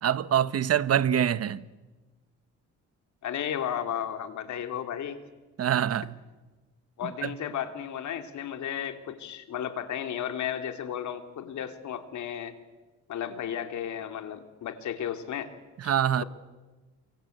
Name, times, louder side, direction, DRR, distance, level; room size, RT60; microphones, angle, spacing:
voice 1, 0.0-1.6 5.6-6.1 7.2-7.3 15.8-16.2, right 9 dB, 55° right, 1.1 m, -25 dB
voice 2, 3.2-5.2 7.0-12.5 13.1-15.5 15.8-15.9, left 9 dB, 70° left, 3.1 m, -34 dB
28.5 x 24.5 x 8.1 m
cardioid pair, 90°, 30 cm